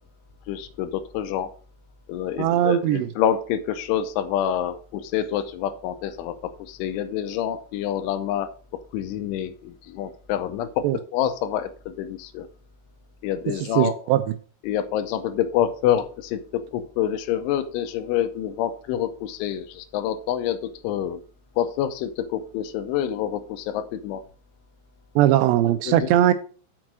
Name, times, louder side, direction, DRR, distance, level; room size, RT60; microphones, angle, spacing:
voice 1, 0.5-1.5 2.1-12.5 13.2-13.9 14.6-21.2 21.6-24.2 25.9-26.1, left 10 dB, 90° left, 3.2 m, -27 dB
voice 2, 2.4-3.1 10.8-11.0 13.8-14.2 25.2-26.3, right 12 dB, 85° right, 2.5 m, -19 dB
6.4 x 6.1 x 6.1 m
omnidirectional pair, 5.4 m